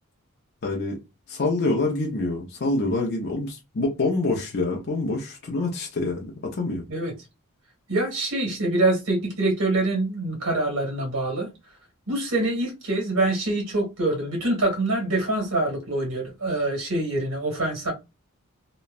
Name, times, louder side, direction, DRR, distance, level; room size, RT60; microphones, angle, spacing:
voice 1, 0.6-1.0 1.3-6.8, left 2 dB, 50° left, 0.6 m, -26 dB
voice 2, 7.9-11.5 12.1-17.9, right 2 dB, 80° right, 1.4 m, -25 dB
3.0 x 2.1 x 2.3 m
head